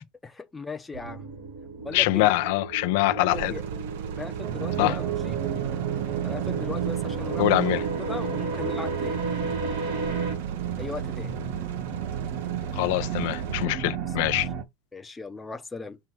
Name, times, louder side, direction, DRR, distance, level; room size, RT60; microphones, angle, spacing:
voice 1, 0.2-1.3 1.8-2.3 3.1-3.6 4.2-5.4 6.2-9.3 10.8-11.3 14.4-14.5 14.9-16.0, left 3 dB, 10° left, 0.7 m, -38 dB
sound 1, 0.9-10.3, right 2 dB, 70° right, 3.1 m, -35 dB
voice 2, 1.9-3.5 4.8-5.0 7.4-7.8 12.8-14.5, left 18 dB, 65° left, 0.5 m, -24 dB
sound 2, 3.3-13.7, right 8 dB, 85° right, 1.0 m, -36 dB
sound 3, 4.4-14.6, right 10 dB, 45° right, 1.2 m, -32 dB
6.2 x 3.4 x 4.5 m
supercardioid pair, 160°, 0 cm